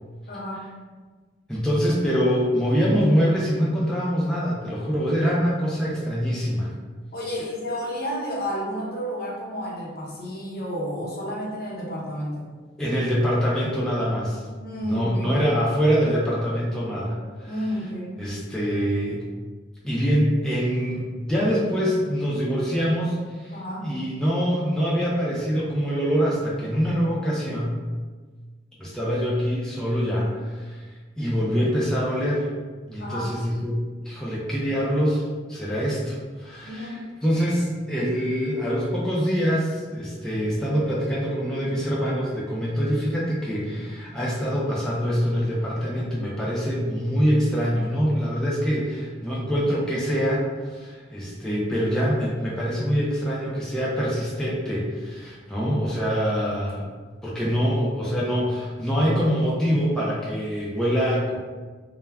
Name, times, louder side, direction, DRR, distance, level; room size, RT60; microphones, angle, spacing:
voice 1, 0.3-0.7 7.1-12.5 14.6-15.4 17.5-18.2 23.5-23.9 33.0-33.4 36.6-37.0, equal, 55° left, -5 dB, 0.7 m, -31 dB
voice 2, 1.5-6.7 12.8-14.4 14.8-17.5 18.2-19.2 19.8-27.8 28.8-30.8 31.2-32.5 32.9-35.2 35.5-50.4 50.7-56.9 57.2-61.4, equal, 5° left, -7 dB, 0.4 m, -24 dB
2.2 x 2.1 x 3.4 m, 1.4 s
head